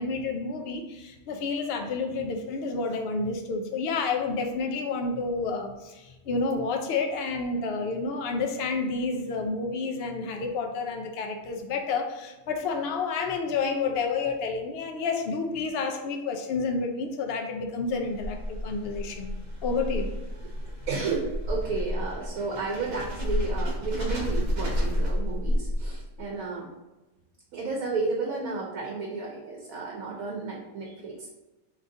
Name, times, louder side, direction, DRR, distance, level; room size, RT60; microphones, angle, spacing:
voice 1, 0.0-19.3 19.6-20.1, left 4 dB, 65° left, 4 dB, 0.6 m, -30 dB
sound 1, 18.0-26.2, equal, 45° right, 0.6 m, -30 dB
voice 2, 20.9-26.7 27.5-31.3, right 4 dB, 85° right, -2 dB, 1.1 m, -32 dB
3.6 x 3.1 x 2.5 m, 1.1 s
omnidirectional pair, 1.4 m